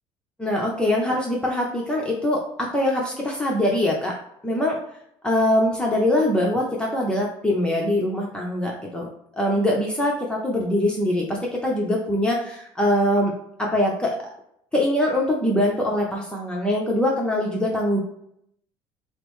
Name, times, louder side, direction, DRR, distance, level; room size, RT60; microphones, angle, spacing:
voice 1, 0.4-4.1 4.4-4.8 5.2-9.1 9.4-11.4 11.6-13.3 13.6-14.1 14.7-18.0, left 1 dB, 10° left, -2 dB, 0.7 m, -23 dB
5.0 x 2.0 x 3.1 m, 0.74 s
cardioid pair, 105°, 10 cm